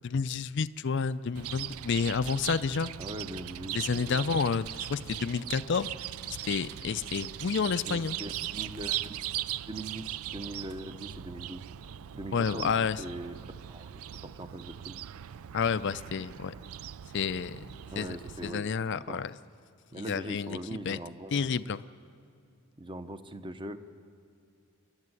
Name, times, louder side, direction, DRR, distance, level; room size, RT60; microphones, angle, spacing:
voice 1, 0.0-2.9 3.7-5.9 6.2-8.2 12.3-13.0 15.5-16.5 17.1-17.6 18.0-18.2 18.4-19.3 20.1-20.6 20.9-21.0 21.3-21.8, left 5 dB, 55° left, 14 dB, 0.4 m, -30 dB
Chirp tweet, 1.3-18.5, right 12 dB, 75° right, 0.4 m, -39 dB
voice 2, 3.0-4.4 7.8-9.3 9.7-11.6 12.1-12.7 13.0-14.0 14.4-15.0 17.9-19.2 19.9-21.6 22.8-23.8, right 1 dB, 20° right, 9 dB, 0.8 m, -41 dB
27.5 x 12.0 x 9.7 m, 2.5 s
head